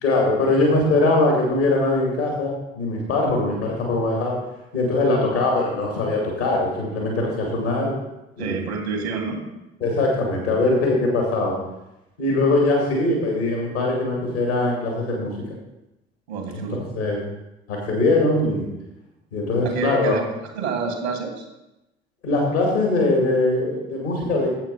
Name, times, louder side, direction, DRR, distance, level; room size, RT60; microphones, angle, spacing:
voice 1, 0.0-4.4 4.7-7.9 8.4-8.6 9.8-11.6 12.2-15.3 16.5-17.2 17.7-18.7 19.3-20.1 22.2-24.5, left 2 dB, 80° left, -1 dB, 2.4 m, -21 dB
voice 2, 8.4-9.4 16.3-16.8 19.6-20.3 20.6-21.4, right 5 dB, 80° right, 4 dB, 1.8 m, -28 dB
8.9 x 7.6 x 5.6 m, 0.94 s
figure-of-eight pair, 45°, 32 cm